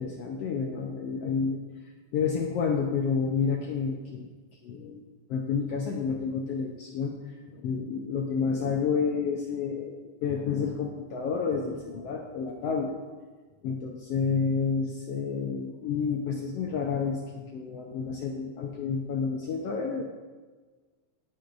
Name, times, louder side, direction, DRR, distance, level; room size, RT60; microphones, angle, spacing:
voice 1, 0.0-1.6 2.1-4.3 4.6-5.0 5.3-7.2 7.5-13.0 13.6-20.0, left 5 dB, 70° left, 0 dB, 1.6 m, -30 dB
17.5 x 8.5 x 2.6 m, 1.4 s
omnidirectional pair, 3.4 m